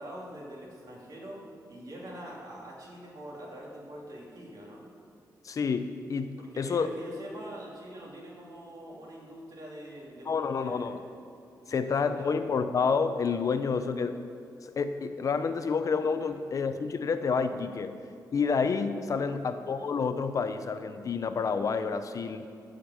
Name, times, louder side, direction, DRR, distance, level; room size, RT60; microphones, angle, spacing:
voice 1, 0.0-4.9 6.4-11.1 11.6-12.3 13.7-13.8 16.2-16.3 19.2-19.4, right 1 dB, 55° right, -3 dB, 2.9 m, -44 dB
voice 2, 5.4-6.9 10.3-11.0 11.7-14.2 14.6-18.0 18.3-22.4, left 5 dB, 50° left, 10 dB, 0.5 m, -29 dB
14.5 x 5.1 x 7.4 m, 2.6 s
wide cardioid pair, 140°, 8 cm